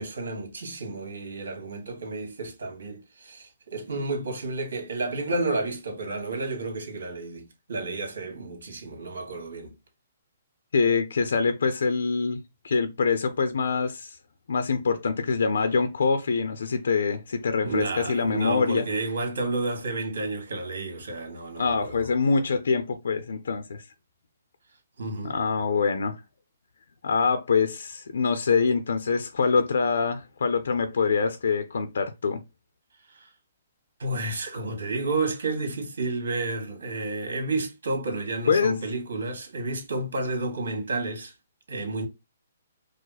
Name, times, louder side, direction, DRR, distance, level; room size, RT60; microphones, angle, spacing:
voice 1, 0.0-9.7 17.6-22.1 25.0-25.4 34.0-41.3 41.7-42.1, right 2 dB, 80° right, 1.7 m, -31 dB
voice 2, 10.7-12.4 12.6-14.1 14.5-18.9 21.6-23.8 25.2-26.1 27.0-32.4 38.5-38.8, left 5 dB, 80° left, 0.6 m, -24 dB
4.9 x 2.1 x 4.0 m
hypercardioid pair, 165°, 0 cm